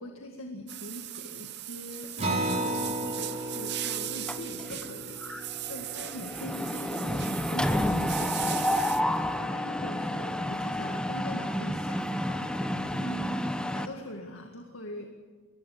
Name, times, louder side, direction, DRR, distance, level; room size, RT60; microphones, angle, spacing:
voice 1, 0.0-8.7 9.1-15.1, left 1 dB, 75° left, 2 dB, 2.1 m, -42 dB
sound 1, 0.7-9.0, right 14 dB, 55° right, 0.7 m, -38 dB
Acoustic guitar, 2.2-7.1, right 1 dB, 30° right, 4.4 m, -34 dB
Mechanisms, 4.3-4.9 5.2-5.4 5.7-13.9, left 1 dB, 5° left, 0.9 m, -30 dB
23.0 x 20.0 x 7.1 m, 1.4 s
head